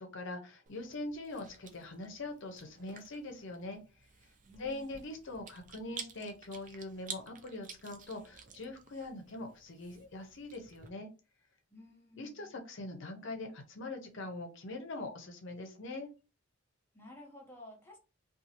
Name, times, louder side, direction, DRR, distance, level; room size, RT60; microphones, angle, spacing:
voice 1, 0.0-3.8 4.6-11.1 12.2-16.1, left 2 dB, 60° left, 0.6 m, -42 dB
Chewing mastication, 0.7-10.9, right 6 dB, 40° right, 0.4 m, -52 dB
voice 2, 4.4-5.1 11.7-12.6 16.9-18.0, left 1 dB, 10° left, 0.6 m, -53 dB
2.7 x 2.4 x 2.7 m
head